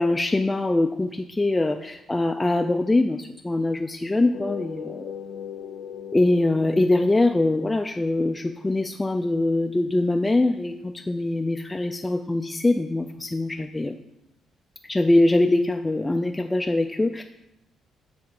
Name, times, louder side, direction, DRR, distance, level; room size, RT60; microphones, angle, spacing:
voice 1, 0.0-5.1 6.1-14.0 14.8-17.2, left 2 dB, 15° left, 5 dB, 0.4 m, -23 dB
sound 1, 4.3-7.9, left 8 dB, 85° left, 0.4 m, -38 dB
7.3 x 3.5 x 6.4 m, 0.86 s
cardioid pair, 90°, 0 cm